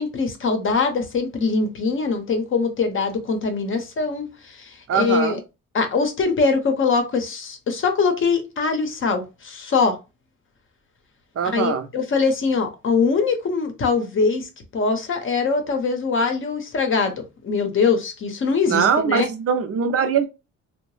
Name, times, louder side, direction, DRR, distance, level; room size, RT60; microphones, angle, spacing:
voice 1, 0.0-5.4 5.7-10.0 11.5-19.3, left 4 dB, 45° left, 0.7 m, -22 dB
voice 2, 4.9-5.4 11.4-11.9 18.7-20.3, right 7 dB, 50° right, 0.5 m, -21 dB
2.7 x 2.0 x 3.1 m
cardioid pair, 120°, 30 cm